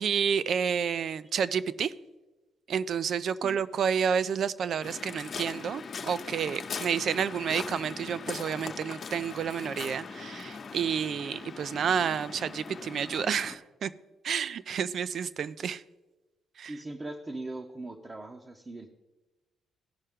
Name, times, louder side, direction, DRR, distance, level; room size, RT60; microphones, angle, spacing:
voice 1, 0.0-1.9 2.7-13.9 14.2-15.8 16.6-16.7, right 7 dB, 60° right, 0.4 m, -30 dB
Waves surf, 4.8-13.6, left 5 dB, 50° left, 1.0 m, -40 dB
voice 2, 16.7-18.9, right 2 dB, 25° right, 0.8 m, -40 dB
16.0 x 5.5 x 3.6 m
cardioid pair, 90°, 0 cm